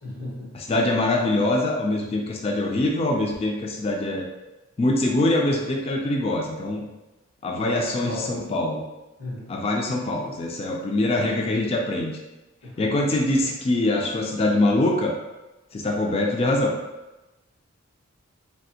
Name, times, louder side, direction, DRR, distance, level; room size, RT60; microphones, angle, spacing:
voice 1, 0.0-0.5 7.5-8.3 9.2-9.5 12.6-13.0, left 1 dB, 80° left, -6 dB, 1.2 m, -35 dB
voice 2, 0.5-4.3 4.8-6.9 7.4-8.8 9.5-12.1 12.8-15.2 15.7-16.7, left 2 dB, 30° left, 1 dB, 0.3 m, -23 dB
3.4 x 2.4 x 2.7 m, 1.0 s
head